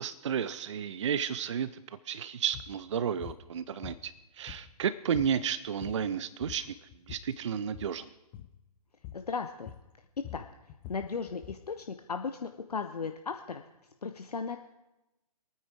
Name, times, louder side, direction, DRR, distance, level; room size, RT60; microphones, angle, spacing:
voice 1, 0.0-6.8 7.1-8.1, right 8 dB, 50° right, 15 dB, 0.4 m, -32 dB
sound 1, 2.5-2.7 3.2-3.4 3.8-4.8 5.1-5.4 5.7-6.1 6.4-7.3 7.7-8.0 8.3-8.6 9.0-9.3 9.7-11.7, left 11 dB, 15° left, 0.4 m, -46 dB
voice 2, 9.1-9.7 10.2-10.4 10.9-13.6 14.0-14.6, left 5 dB, 70° left, 6 dB, 0.7 m, -36 dB
24.0 x 9.6 x 3.5 m, 0.97 s
figure-of-eight pair, 130°, 21 cm